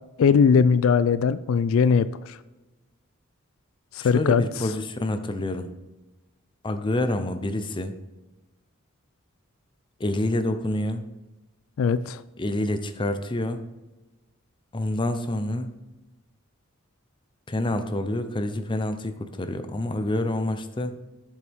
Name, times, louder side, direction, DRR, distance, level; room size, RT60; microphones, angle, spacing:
voice 1, 0.2-2.4 3.9-4.4 11.8-12.2, left 6 dB, 75° left, 15 dB, 0.3 m, -20 dB
voice 2, 4.0-5.7 6.6-7.9 10.0-11.1 12.4-13.7 14.7-15.7 17.5-21.0, left 1 dB, 25° left, 9 dB, 0.6 m, -27 dB
8.1 x 7.2 x 3.5 m, 1.1 s
head